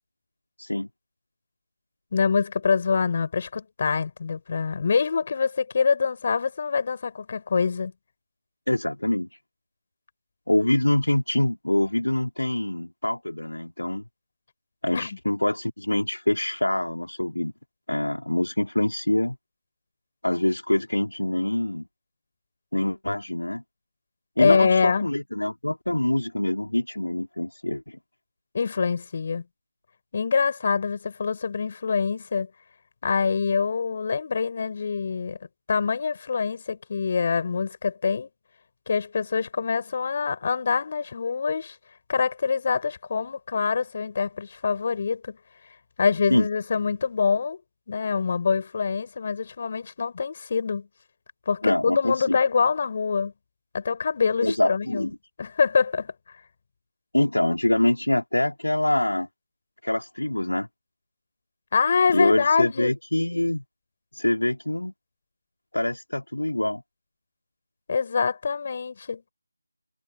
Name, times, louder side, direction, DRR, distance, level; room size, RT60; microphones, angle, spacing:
voice 1, 2.1-7.9 14.9-15.1 24.4-25.1 28.5-29.4 30.1-32.5 33.0-35.4 35.7-38.3 38.9-41.7 42.1-45.4 46.0-47.6 47.9-50.9 51.4-53.3 53.7-55.1 55.4-56.1 61.7-62.9 67.9-69.2, left 5 dB, 35° left, 6.8 m, -25 dB
voice 2, 8.7-9.3 10.5-14.0 14.8-17.5 17.9-19.4 20.2-21.9 22.7-23.6 24.4-28.0 46.3-46.5 51.6-52.4 54.4-55.2 57.1-59.3 59.8-60.7 62.1-63.6 64.1-64.9 65.7-66.8, left 1 dB, 75° left, 3.4 m, -25 dB
figure-of-eight pair, 160°, 0 cm